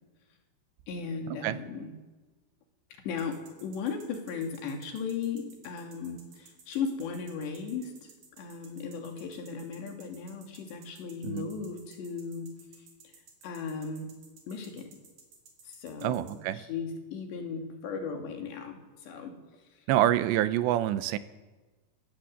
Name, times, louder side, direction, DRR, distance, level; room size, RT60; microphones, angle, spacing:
voice 1, 0.9-1.9 3.0-12.5 13.4-14.1 14.5-14.9 15.6-19.3, left 5 dB, 80° left, 3 dB, 5.0 m, -36 dB
sound 1, 3.2-16.3, right 5 dB, 50° right, 4.9 m, -55 dB
voice 2, 16.0-16.6 19.9-21.2, right 13 dB, 85° right, 13 dB, 3.2 m, -26 dB
28.5 x 16.5 x 7.9 m, 1.2 s
omnidirectional pair, 5.0 m